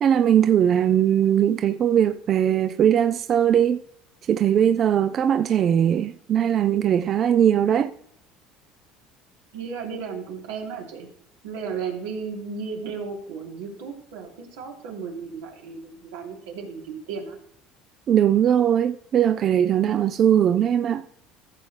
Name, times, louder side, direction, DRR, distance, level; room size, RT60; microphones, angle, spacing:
voice 1, 0.0-3.8 4.3-7.9 18.1-21.0, right 9 dB, 45° right, 0.4 m, -20 dB
voice 2, 9.5-11.1 11.4-17.4, right 5 dB, 85° right, 2.9 m, -34 dB
14.5 x 7.2 x 3.2 m
supercardioid pair, 105°, 0 cm